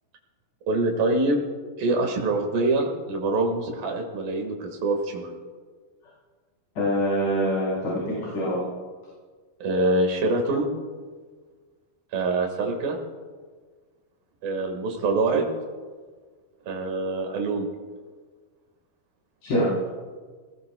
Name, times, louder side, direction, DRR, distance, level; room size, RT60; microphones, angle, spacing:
voice 1, 0.7-1.4 1.8-5.4 9.6-10.7 12.1-13.0 14.4-15.5 16.7-17.7, right 2 dB, 85° right, 2 dB, 3.6 m, -25 dB
voice 2, 6.8-8.6 19.4-19.7, equal, 60° left, -7 dB, 5.4 m, -24 dB
23.0 x 18.5 x 2.3 m, 1.5 s
omnidirectional pair, 4.0 m